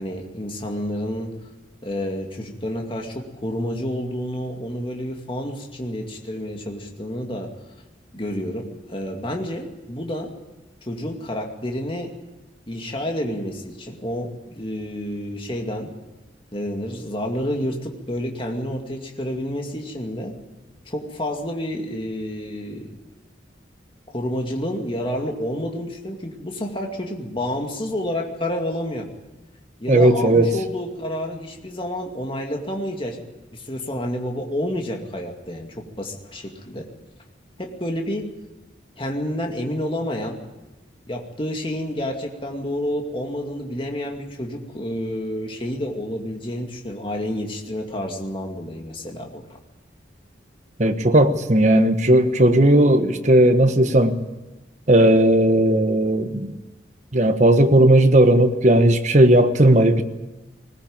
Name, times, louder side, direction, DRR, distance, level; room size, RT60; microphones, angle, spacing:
voice 1, 0.0-1.3 1.8-7.6 8.1-10.3 10.8-12.1 12.7-15.9 16.5-20.4 20.9-23.0 24.1-29.1 29.8-33.2 33.5-36.9 37.6-38.3 39.0-40.4 41.1-49.6, equal, 30° left, 2.3 m, -29 dB
voice 2, 29.9-30.5 50.8-54.1 54.9-56.5 57.1-60.0, right 1 dB, 40° right, 1.3 m, -16 dB
20.5 x 19.0 x 8.9 m
head